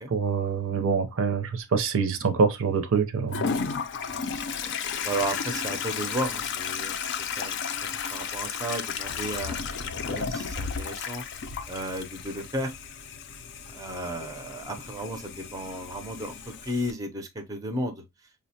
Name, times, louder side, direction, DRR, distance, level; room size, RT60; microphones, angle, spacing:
voice 1, 0.1-3.5, right 5 dB, 65° right, 0.6 m, -25 dB
Toilet flush, 3.3-16.9, left 6 dB, 55° left, 0.4 m, -33 dB
voice 2, 5.0-11.2 11.7-12.7 13.7-16.3 16.6-18.0, right 1 dB, 15° right, 0.5 m, -34 dB
5.1 x 2.1 x 2.7 m
head